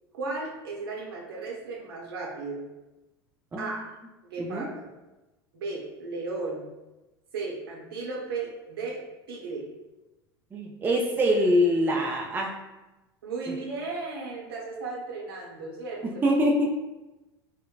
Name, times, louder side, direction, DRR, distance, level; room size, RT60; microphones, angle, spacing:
voice 1, 0.1-2.6 3.6-3.8 4.2-4.9 5.5-6.6 7.3-9.0 9.3-9.7 13.2-16.3, right 3 dB, 70° right, -2 dB, 0.8 m, -35 dB
voice 2, 3.5-3.8 4.4-4.7 10.5-12.5 13.5-13.6 16.0-16.7, equal, 15° right, 0 dB, 0.4 m, -24 dB
3.7 x 2.1 x 2.2 m, 1.1 s
figure-of-eight pair, 80°, 13 cm